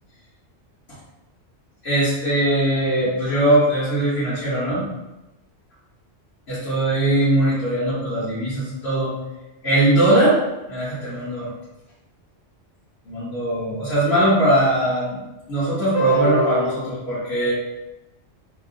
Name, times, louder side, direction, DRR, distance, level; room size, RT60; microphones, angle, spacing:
voice 1, 1.8-4.9 6.5-9.1 9.6-10.4 10.7-11.5 13.1-15.2 15.5-17.5, right 1 dB, 60° left, -12 dB, 1.2 m, -20 dB
2.8 x 2.1 x 2.6 m, 0.97 s
omnidirectional pair, 1.3 m